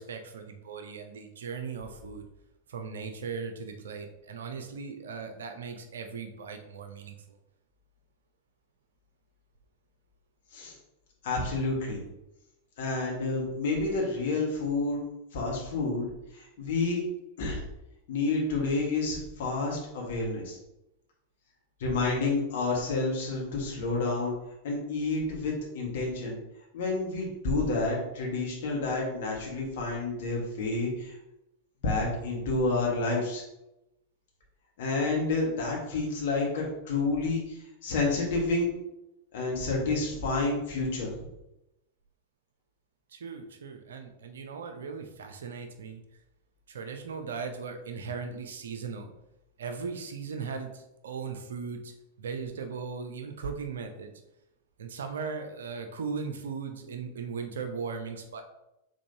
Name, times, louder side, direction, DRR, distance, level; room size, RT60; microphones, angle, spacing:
voice 1, 0.0-2.3 2.7-7.4 43.1-46.0 46.7-49.1 49.6-54.1 54.8-58.4, right 5 dB, 65° right, 6 dB, 0.6 m, -38 dB
voice 2, 11.2-12.0 12.8-15.0 15.3-16.1 16.3-17.0 17.4-17.6 18.1-20.6 21.8-24.3 24.6-26.4 26.7-31.1 31.8-33.4 34.8-38.7 39.3-41.2, left 3 dB, 55° left, -2 dB, 1.5 m, -29 dB
5.2 x 3.5 x 2.7 m, 0.88 s
figure-of-eight pair, 90°, 0 cm